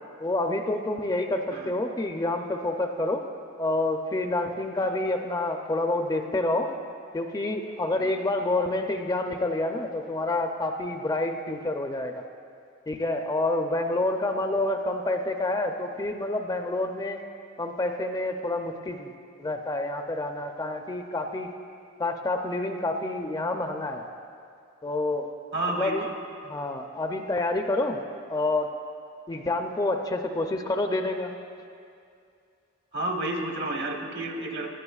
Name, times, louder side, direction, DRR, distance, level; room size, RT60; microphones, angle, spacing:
voice 1, 0.2-3.2 3.6-6.7 7.1-12.1 12.9-17.2 17.6-19.1 19.4-21.5 22.0-24.0 24.8-25.3 25.8-26.1 26.5-28.0 28.3-28.7 29.3-31.3, left 2 dB, 20° left, 5 dB, 0.4 m, -28 dB
voice 2, 25.5-26.2 32.9-34.7, right 1 dB, 60° right, 3 dB, 1.1 m, -31 dB
16.5 x 11.5 x 2.4 m, 2.4 s
head